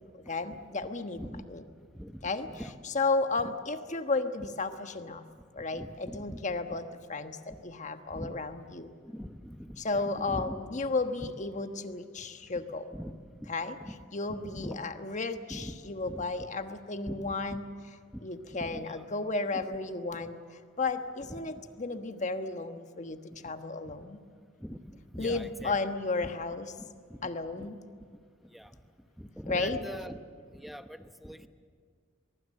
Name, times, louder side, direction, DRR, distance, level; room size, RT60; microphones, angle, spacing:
voice 1, 0.3-1.2 1.5-1.6 2.2-2.5 2.8-5.2 5.5-8.9 9.8-12.9 13.5-13.8 14.1-17.7 18.2-20.4 20.8-24.2 25.2-26.7 27.2-27.8 29.5-29.8, left 3 dB, 35° left, 8 dB, 1.3 m, -33 dB
voice 2, 1.9-2.7 3.4-3.5 5.7-6.4 8.1-8.3 9.0-10.5 11.2-11.3 12.9-13.5 13.8-14.0 14.4-14.8 15.5-15.7 16.0-16.5 17.1-17.6 18.5-19.0 19.5-19.6 20.2-20.3 21.3-21.4 23.4-23.5 24.6-24.8 25.1-25.8 26.2-26.3 26.8-27.3 27.6-27.7 28.1-28.2 28.5-28.7 29.2-30.2 30.5-31.5, equal, ahead, 8 dB, 1.0 m, -42 dB
23.0 x 22.5 x 7.7 m, 2.1 s
head